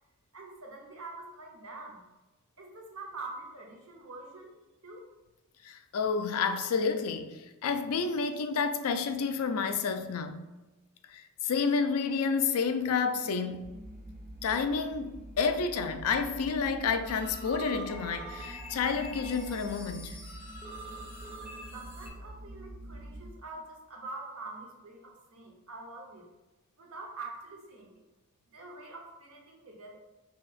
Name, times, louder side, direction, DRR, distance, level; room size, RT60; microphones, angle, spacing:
voice 1, 0.3-2.0 2.6-4.5 4.8-5.0 21.7-26.3 26.8-28.0 28.5-30.0, right 3 dB, 65° right, 0.8 m, -45 dB
voice 2, 5.6-10.4 11.1-13.7 14.4-20.2, left 5 dB, 75° left, 0.4 m, -30 dB
sound 1, 13.6-23.3, right 1 dB, 40° right, 0.4 m, -46 dB
sound 2, 17.0-22.1, right 1 dB, 10° right, 0.8 m, -45 dB
5.6 x 2.9 x 2.4 m
head